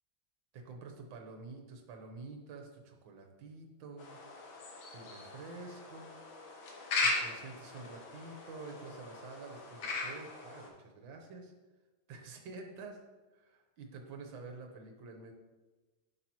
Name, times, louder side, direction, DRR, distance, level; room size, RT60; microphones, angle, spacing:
voice 1, 0.5-4.2 4.9-6.1 7.0-11.5 12.1-13.0 13.3-15.3, right 3 dB, 70° right, 3 dB, 1.7 m, -48 dB
sound 1, 4.0-10.7, left 3 dB, 70° left, 1.9 m, -38 dB
9.7 x 6.3 x 3.0 m, 1.2 s
omnidirectional pair, 2.3 m